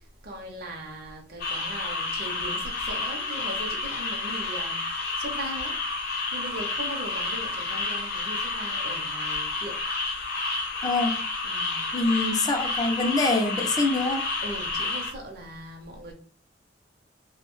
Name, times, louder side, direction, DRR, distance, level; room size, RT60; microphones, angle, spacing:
voice 1, 0.2-4.8 5.2-5.8 6.3-9.8 11.4-11.9 14.4-16.1, right 1 dB, 55° right, 0.6 m, -39 dB
sound 1, 1.4-15.1, left 3 dB, 55° left, 0.7 m, -30 dB
voice 2, 10.8-11.2 11.9-14.2, left 2 dB, 20° left, 0.4 m, -25 dB
2.6 x 2.1 x 2.9 m
head